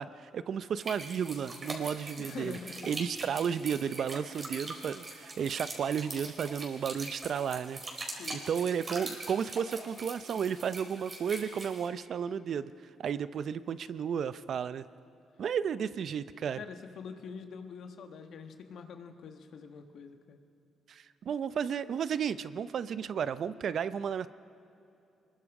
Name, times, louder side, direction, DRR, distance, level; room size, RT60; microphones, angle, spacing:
voice 1, 0.0-2.6 2.9-7.8 8.3-12.7 13.0-14.8 15.4-16.6 20.9-24.3, right 7 dB, 60° right, 14 dB, 0.6 m, -33 dB
sound 1, 0.8-11.9, right 2 dB, 35° right, 3.9 m, -43 dB
voice 2, 2.2-2.9 8.2-8.7 16.6-20.4, left 6 dB, 65° left, 6 dB, 1.7 m, -45 dB
25.0 x 21.5 x 4.9 m, 2.7 s
cardioid pair, 90°, 0 cm